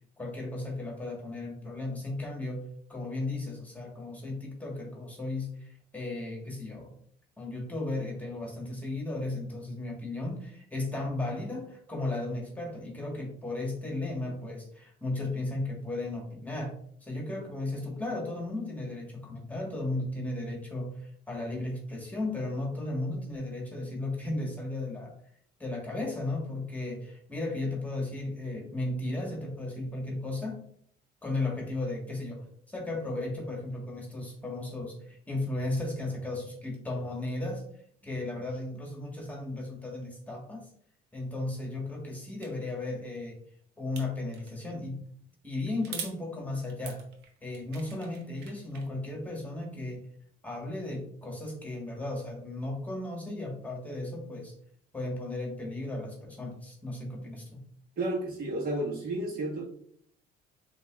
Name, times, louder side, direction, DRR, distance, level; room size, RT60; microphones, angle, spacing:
voice 1, 0.2-2.6 2.9-6.9 7.4-16.8 17.0-25.1 25.6-30.6 31.2-37.6 38.0-40.7 41.1-43.4 43.8-45.0 45.4-47.0 47.4-50.0 50.4-54.5 54.9-57.6, left 2 dB, 10° left, -1 dB, 1.3 m, -35 dB
sound 1, 42.4-42.5 44.0-44.6 45.8-46.2 46.7-48.9, right 6 dB, 85° right, 0.8 m, -43 dB
voice 2, 58.0-59.6, right 1 dB, 60° right, -3 dB, 1.5 m, -32 dB
6.7 x 2.8 x 2.3 m, 0.64 s
cardioid pair, 110°, 17 cm